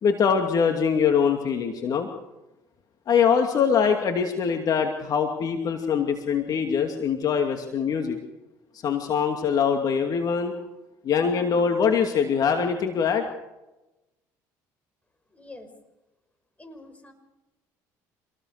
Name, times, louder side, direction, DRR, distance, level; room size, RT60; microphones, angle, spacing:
voice 1, 0.0-2.1 3.1-8.2 8.8-10.5 11.0-13.3, left 6 dB, 50° left, 4 dB, 2.5 m, -23 dB
voice 2, 15.3-15.7 16.6-17.1, left 2 dB, 15° left, 8 dB, 5.7 m, -45 dB
26.5 x 19.0 x 6.7 m, 1.0 s
supercardioid pair, 85°, 8 cm